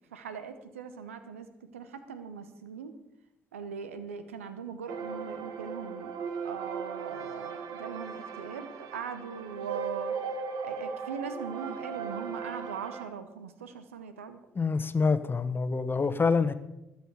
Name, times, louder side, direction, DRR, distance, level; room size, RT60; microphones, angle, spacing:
voice 1, 0.1-1.5 1.7-2.9 3.5-6.1 6.4-10.2 10.6-14.4, right 6 dB, 85° right, 11 dB, 0.9 m, -40 dB
sound 1, 4.9-13.1, right 5 dB, 65° right, 1.4 m, -38 dB
voice 2, 14.5-16.5, left 4 dB, 30° left, 12 dB, 1.1 m, -26 dB
20.5 x 7.0 x 4.8 m, 0.90 s
figure-of-eight pair, 45°, 7 cm